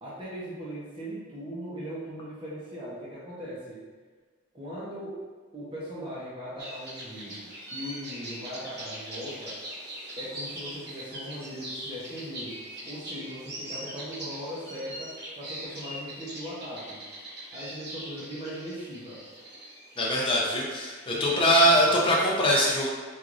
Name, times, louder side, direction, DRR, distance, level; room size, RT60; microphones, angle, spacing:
voice 1, 0.0-3.8 4.5-5.2 5.5-9.6 10.2-17.0 17.5-19.2 21.1-22.0, equal, 25° right, -8 dB, 0.7 m, -39 dB
sound 1, 6.6-21.1, right 1 dB, 55° right, 1.1 m, -41 dB
voice 2, 20.0-22.9, equal, 25° left, -4 dB, 0.6 m, -22 dB
4.5 x 2.5 x 2.5 m, 1.4 s
head